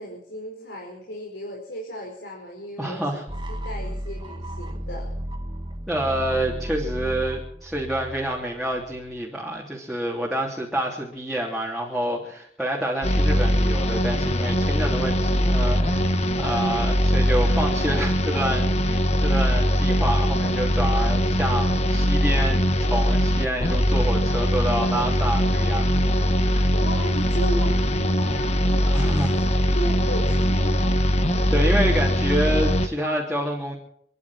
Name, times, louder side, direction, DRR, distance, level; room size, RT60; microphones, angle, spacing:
voice 1, 0.0-5.1 26.7-31.0, equal, 80° left, -1 dB, 5.0 m, -35 dB
voice 2, 2.8-3.2 5.9-26.1 26.5-26.6 28.8-29.4 31.5-33.8, right 1 dB, ahead, -4 dB, 3.2 m, -28 dB
sound 1, 3.3-9.2, equal, 25° right, 1.7 m, -34 dB
sound 2, 13.0-32.9, equal, 40° left, 1.5 m, -21 dB
29.5 x 11.0 x 4.4 m, 0.69 s
head